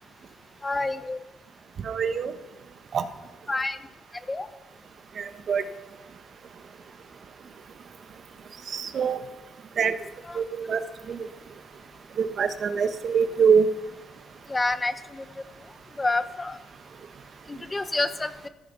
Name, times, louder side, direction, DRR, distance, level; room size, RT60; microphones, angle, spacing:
voice 1, 0.6-1.2 3.5-3.8 4.3-4.5 10.3-10.4 14.5-15.2 16.0-16.6 17.5-18.5, left 2 dB, 20° left, 11 dB, 1.1 m, -28 dB
voice 2, 1.8-2.3 2.9-3.0 5.2-5.7 8.7-9.2 9.8-10.0 10.3-11.3 12.2-13.7, right 6 dB, 55° right, 10 dB, 1.3 m, -24 dB
15.0 x 13.0 x 5.6 m, 1.0 s
cardioid pair, 90°, 0 cm